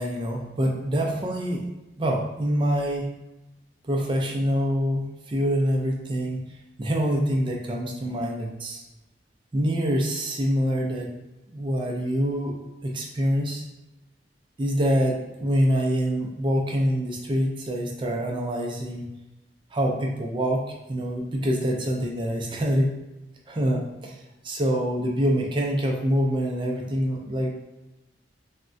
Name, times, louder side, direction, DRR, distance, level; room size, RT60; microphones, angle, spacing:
voice 1, 0.0-1.6 2.0-3.1 3.8-6.4 6.8-8.8 9.5-11.1 11.5-12.5 12.8-13.6 14.6-19.1 19.7-20.6 20.9-22.9 23.5-24.2 24.4-27.5, equal, 25° right, 0 dB, 0.4 m, -25 dB
3.5 x 2.1 x 2.5 m, 1.0 s
head